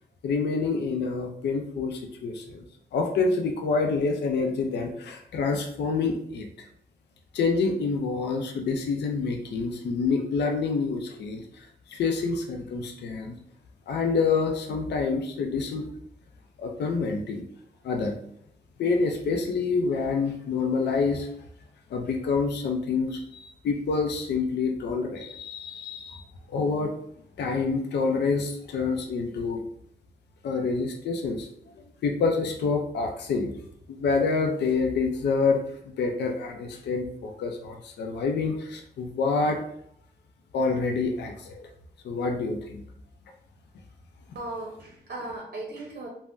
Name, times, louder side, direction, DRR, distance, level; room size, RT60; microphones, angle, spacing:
voice 1, 0.2-2.6 2.9-6.7 7.3-13.4 13.9-15.8 16.6-17.4 17.8-18.2 18.8-21.3 21.9-26.2 26.5-27.0 27.4-29.6 30.4-31.5 32.0-33.5 33.9-39.6 40.5-41.7 42.0-42.8, left 4 dB, 80° left, 3 dB, 0.4 m, -27 dB
voice 2, 44.3-46.1, right 2 dB, 60° right, -1 dB, 0.6 m, -37 dB
3.3 x 2.0 x 2.5 m, 0.69 s
cardioid pair, 60°, 17 cm